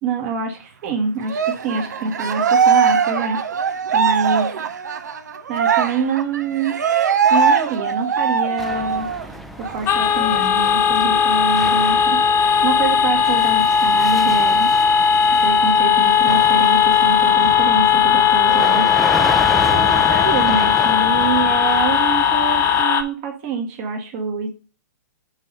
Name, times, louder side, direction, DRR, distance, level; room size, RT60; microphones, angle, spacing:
voice 1, 0.0-3.4 3.9-4.6 5.5-6.8 7.3-9.1 9.6-14.7 15.4-18.9 19.5-24.5, right 4 dB, 45° right, 1.8 m, -25 dB
Cheering, 1.3-9.3 9.6-9.8 10.2-11.2, right 6 dB, 75° right, 0.8 m, -20 dB
sound 1, 8.6-22.8, equal, ahead, 0.5 m, -31 dB
sound 2, 9.9-23.0, left 8 dB, 25° left, 0.8 m, -17 dB
6.2 x 4.0 x 5.3 m
hypercardioid pair, 120°, 9 cm